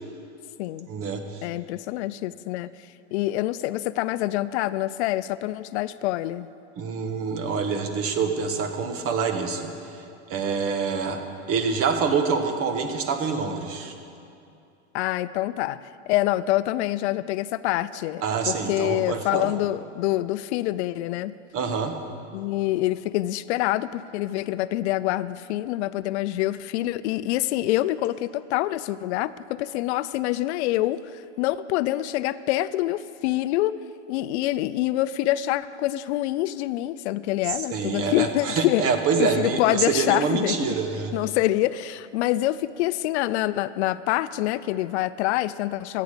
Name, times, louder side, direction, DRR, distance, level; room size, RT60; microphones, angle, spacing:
voice 1, 0.9-1.5 6.8-10.0 10.3-11.2 11.5-13.9 18.2-19.5 21.5-22.0 37.7-41.1, right 5 dB, 40° right, 6 dB, 1.4 m, -26 dB
voice 2, 1.4-2.7 3.1-6.5 14.9-15.8 16.1-21.3 22.3-33.7 34.1-38.9 39.2-40.6 41.1-46.0, left 15 dB, 70° left, 15 dB, 0.5 m, -26 dB
14.0 x 8.5 x 6.8 m, 2.5 s
supercardioid pair, 120°, 35 cm